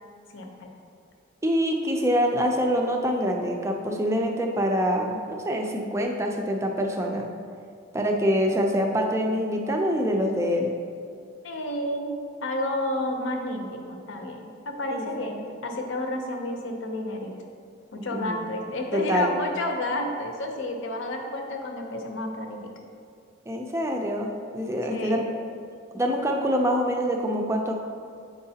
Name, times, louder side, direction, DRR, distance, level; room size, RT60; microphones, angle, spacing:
voice 1, 0.3-0.7 11.4-17.3 17.9-22.7 24.9-25.3, left 1 dB, 70° left, 2 dB, 0.7 m, -31 dB
voice 2, 1.4-7.3 7.9-10.7 14.9-15.1 18.1-18.4 18.9-19.3 23.5-25.2 25.9-27.7, equal, 15° right, 2 dB, 0.4 m, -25 dB
7.8 x 4.7 x 2.8 m, 2.4 s
head